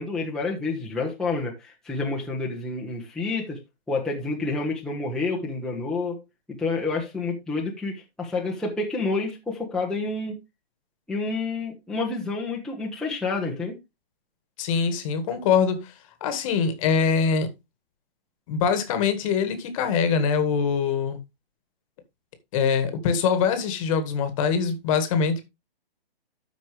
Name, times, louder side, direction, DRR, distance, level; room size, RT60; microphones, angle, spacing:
voice 1, 0.0-3.6 3.9-6.2 6.6-10.4 11.1-13.8, left 3 dB, ahead, 1.3 m, -29 dB
voice 2, 14.6-15.9 16.2-17.5 18.5-21.2 22.5-25.5, left 6 dB, 35° left, 1.8 m, -23 dB
13.0 x 5.2 x 3.3 m
hypercardioid pair, 140°, 30 cm